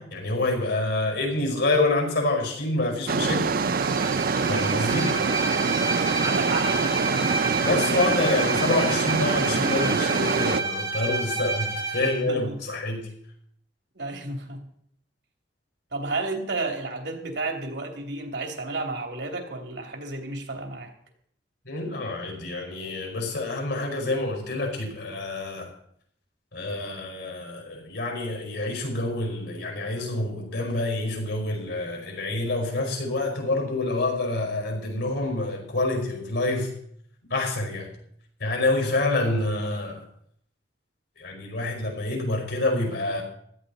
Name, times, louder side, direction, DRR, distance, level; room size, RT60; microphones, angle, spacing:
voice 1, 0.0-3.5 4.5-5.2 7.6-13.1 21.7-25.7 26.5-36.7 37.3-37.9 38.4-40.0 41.2-43.2, left 2 dB, 80° left, 2 dB, 5.2 m, -27 dB
sound 1, 3.1-10.6, right 4 dB, 55° right, 0.6 m, -25 dB
Bowed string instrument, 3.6-12.2, right 3 dB, 20° right, 2.4 m, -30 dB
voice 2, 4.6-5.1 6.2-7.3 12.0-12.6 13.9-14.6 15.9-20.9, right 3 dB, 75° right, 3 dB, 3.0 m, -32 dB
16.5 x 12.5 x 4.2 m, 0.68 s
head